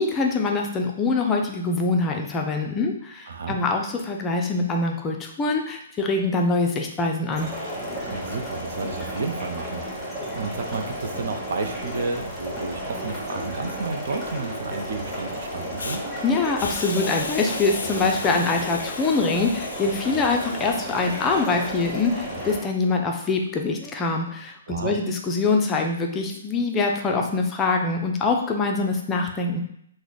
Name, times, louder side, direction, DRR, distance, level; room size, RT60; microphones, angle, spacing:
voice 1, 0.0-7.5 16.2-29.6, left 3 dB, 15° left, 2 dB, 0.4 m, -24 dB
voice 2, 3.3-3.6 8.1-16.1 24.7-24.9, right 4 dB, 70° right, 5 dB, 0.5 m, -32 dB
sound 1, 7.3-22.6, equal, 5° right, 1.0 m, -33 dB
Hiss, 15.8-16.0 16.6-21.7, left 4 dB, 85° left, 0.4 m, -37 dB
3.2 x 2.0 x 4.0 m, 0.71 s
hypercardioid pair, 150°, 0 cm